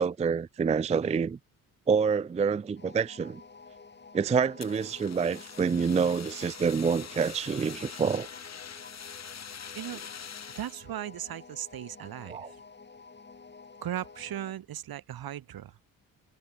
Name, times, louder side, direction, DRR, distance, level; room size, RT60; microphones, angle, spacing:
voice 1, 0.0-1.4 1.9-3.4 4.1-8.3 12.3-12.5, right 6 dB, 20° right, 0.4 m, -27 dB
sound 1, 2.8-14.6, left 4 dB, 30° left, 4.4 m, -50 dB
Fire, 4.6-10.8, left 7 dB, 45° left, 3.4 m, -44 dB
voice 2, 10.5-12.6 13.8-15.8, right 11 dB, 70° right, 4.5 m, -37 dB
cardioid pair, 95°, 37 cm